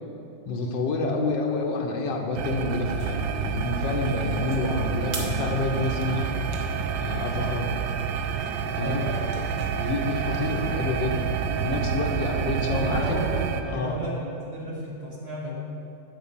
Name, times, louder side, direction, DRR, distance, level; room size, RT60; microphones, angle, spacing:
voice 1, 0.5-6.3 6.9-7.7 8.8-9.1 9.7-13.2 13.5-14.0, left 3 dB, 70° left, 1 dB, 1.6 m, -28 dB
sound 1, 2.3-13.6, right 7 dB, 80° right, 1.3 m, -28 dB
sound 2, 2.5-11.3, right 3 dB, 60° right, 1.6 m, -46 dB
voice 2, 8.8-9.3 12.7-15.5, equal, 30° right, -6 dB, 2.3 m, -33 dB
10.0 x 5.1 x 6.9 m, 2.7 s
omnidirectional pair, 2.1 m